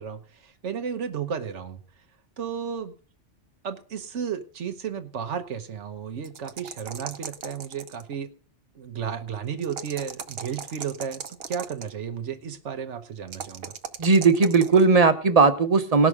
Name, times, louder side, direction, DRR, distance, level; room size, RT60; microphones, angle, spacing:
voice 1, 0.0-1.8 2.4-3.0 3.6-8.3 8.7-13.7, right 7 dB, 85° right, 1.3 m, -33 dB
sound 1, 6.2-8.1 9.6-11.9 13.3-14.9, right 7 dB, 60° right, 1.1 m, -38 dB
voice 2, 14.0-16.1, right 4 dB, 35° right, 1.0 m, -18 dB
18.5 x 6.3 x 4.8 m
omnidirectional pair, 1.2 m